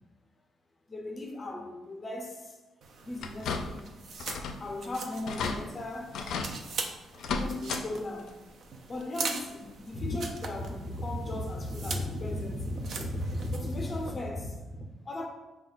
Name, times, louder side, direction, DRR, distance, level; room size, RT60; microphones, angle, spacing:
voice 1, 0.9-2.6 3.0-3.9 4.6-6.2 7.4-8.4 8.9-15.3, left 1 dB, 20° left, 0.6 m, -36 dB
sound 1, 2.8-14.1, right 4 dB, 55° right, 0.4 m, -42 dB
sound 2, 3.2-3.9 4.2-4.6 4.9-5.0 5.3-5.6 6.1-6.5 7.1-7.8 8.2-8.3 9.7-9.8 10.3-10.4, left 4 dB, 70° left, 0.4 m, -33 dB
4.5 x 2.2 x 4.0 m
cardioid pair, 140°, 0 cm